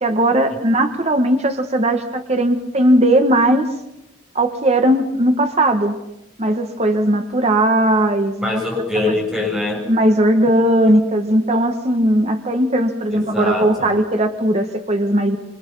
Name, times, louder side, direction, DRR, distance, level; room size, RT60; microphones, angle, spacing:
voice 1, 0.0-3.7 4.3-6.0 6.4-8.6 9.9-15.4, right 1 dB, 35° right, 6 dB, 1.6 m, -17 dB
voice 2, 8.4-9.9 13.1-14.0, left 2 dB, 5° right, -1 dB, 7.2 m, -23 dB
27.0 x 24.5 x 5.6 m, 0.86 s
head